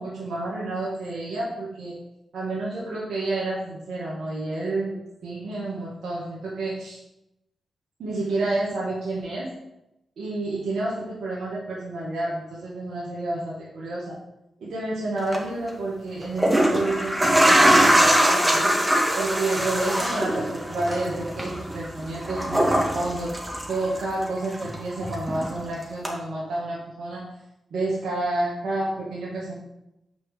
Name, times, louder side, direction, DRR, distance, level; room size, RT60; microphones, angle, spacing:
voice 1, 0.0-2.0 2.3-7.0 8.0-9.5 10.2-14.2 14.6-18.8 19.2-23.3 23.7-27.3 27.7-29.5, right 2 dB, 75° right, -7 dB, 2.0 m, -29 dB
sound 1, 15.2-15.4 16.2-24.2 24.5-25.6 26.1-26.2, equal, 10° right, 2.2 m, -22 dB
6.3 x 4.6 x 6.7 m, 0.88 s
supercardioid pair, 40°, 0 cm